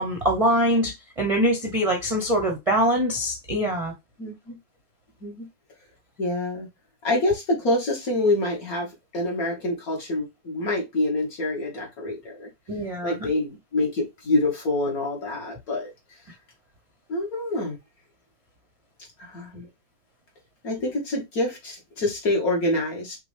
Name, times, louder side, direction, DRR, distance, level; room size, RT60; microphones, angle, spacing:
voice 1, 0.0-3.9 12.7-13.2, equal, 30° right, 0.6 m, -23 dB
voice 2, 4.2-4.6 5.2-5.5 6.2-6.7 7.0-12.5 13.0-15.9 17.1-17.8 19.2-19.7 20.6-23.2, left 2 dB, 50° left, 2.1 m, -26 dB
6.0 x 2.6 x 3.4 m
omnidirectional pair, 2.0 m